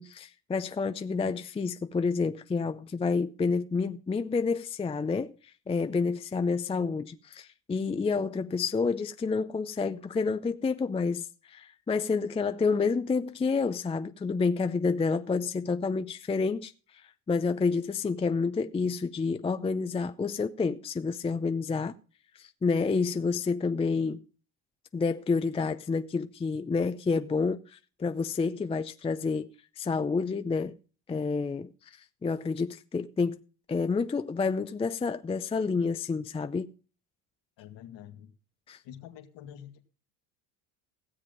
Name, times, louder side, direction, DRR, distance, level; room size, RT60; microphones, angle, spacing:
voice 1, 0.0-5.3 5.7-16.7 17.0-22.0 22.4-24.2 24.9-29.5 29.8-30.8 31.1-33.4 33.7-36.7 38.7-38.8, left 4 dB, 15° left, 0.5 m, -29 dB
voice 2, 37.6-38.3 38.8-39.9, left 10 dB, 65° left, 2.0 m, -47 dB
16.0 x 7.5 x 5.2 m
supercardioid pair, 80°, 47 cm